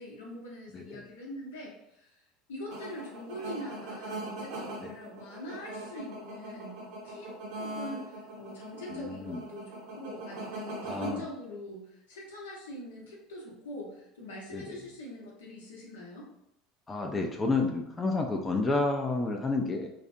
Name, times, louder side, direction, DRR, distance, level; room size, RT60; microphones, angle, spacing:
voice 1, 0.0-2.1 2.5-6.8 7.0-7.3 7.6-16.3, left 1 dB, 80° left, -4 dB, 0.7 m, -43 dB
voice 2, 0.7-1.1 4.8-4.9 8.9-9.4 10.9-11.2 14.5-14.8 16.9-19.9, left 3 dB, 20° left, 2 dB, 0.4 m, -30 dB
sound 1, 2.7-11.1, right 2 dB, 65° right, 0.6 m, -41 dB
2.4 x 2.0 x 2.6 m, 0.82 s
hypercardioid pair, 80°, 0 cm